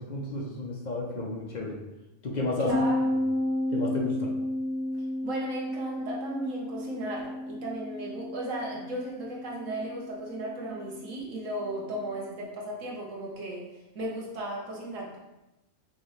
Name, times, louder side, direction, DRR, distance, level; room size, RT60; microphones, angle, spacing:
voice 1, 0.0-1.8 2.2-2.8 3.7-4.3, left 2 dB, 45° left, -2 dB, 0.7 m, -32 dB
voice 2, 2.6-3.0 4.9-15.2, right 1 dB, 75° right, -3 dB, 1.4 m, -36 dB
sound 1, 2.7-12.2, left 1 dB, 30° right, 0.5 m, -33 dB
5.1 x 3.0 x 3.1 m, 0.97 s
omnidirectional pair, 1.3 m